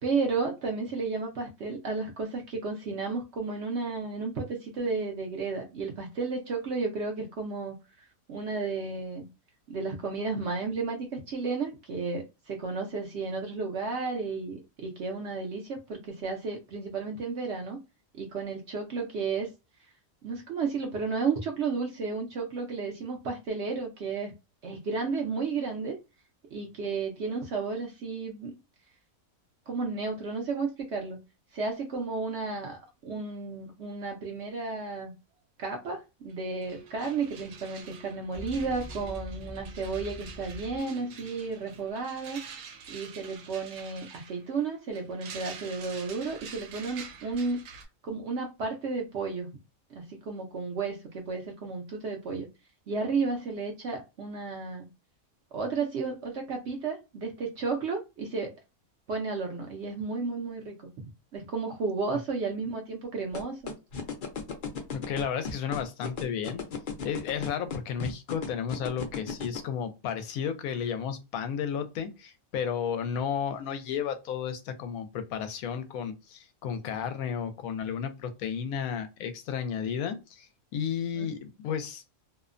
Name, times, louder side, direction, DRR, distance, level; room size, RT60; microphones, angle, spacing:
voice 1, 0.0-9.3 9.7-17.8 18.1-19.5 20.2-24.3 24.6-26.0 26.5-28.5 29.7-31.2 31.5-35.1 35.6-42.4 42.9-47.6 48.0-49.5 49.9-52.5 52.9-54.9 55.5-58.5 59.1-60.9 61.3-63.8 81.2-81.3, right 4 dB, 60° right, 0.8 m, -33 dB
sound 1, 36.3-36.4 36.6-47.8, right 6 dB, 90° right, 1.1 m, -47 dB
sound 2, 36.5-41.9, left 1 dB, 35° right, 0.3 m, -45 dB
sound 3, 63.3-69.6, left 6 dB, 55° left, 0.6 m, -34 dB
voice 2, 64.9-66.6 67.0-82.0, left 7 dB, 80° left, 1.0 m, -33 dB
2.7 x 2.1 x 2.4 m
omnidirectional pair, 1.5 m